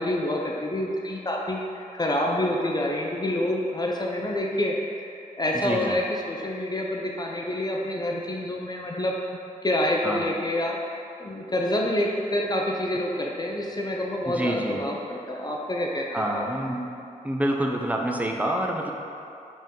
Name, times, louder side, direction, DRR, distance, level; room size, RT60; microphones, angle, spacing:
voice 1, 0.0-4.7 5.0-9.2 9.6-10.8 11.2-16.4, left 1 dB, 25° left, -1 dB, 0.7 m, -27 dB
voice 2, 5.5-5.9 10.0-10.2 14.3-14.8 16.1-16.9 17.2-18.9, right 1 dB, 10° right, 1 dB, 0.7 m, -27 dB
5.2 x 3.7 x 5.4 m, 2.7 s
cardioid pair, 70°, 15 cm